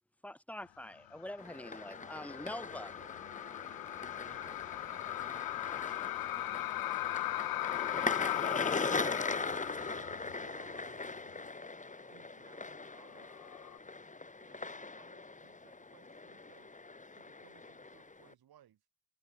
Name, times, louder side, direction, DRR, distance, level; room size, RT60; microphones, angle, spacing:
voice 1, 0.2-2.9, left 1 dB, 5° left, 1.6 m, -44 dB
sound 1, 1.1-10.7 11.0-11.1 13.2-13.8, left 16 dB, 60° left, 0.6 m, -38 dB
sound 2, 1.4-18.3, left 3 dB, 20° left, 2.0 m, -41 dB
voice 2, 2.7-3.1 4.3-4.6 7.9-8.1 8.3-9.2 9.8-11.2 12.1-13.5 14.4-16.8 17.1-18.8, right 11 dB, 65° right, 5.2 m, -62 dB
voice 3, 4.7-5.8 6.5-7.6 9.6-10.2, right 2 dB, 20° right, 7.3 m, -62 dB
supercardioid pair, 65°, 40 cm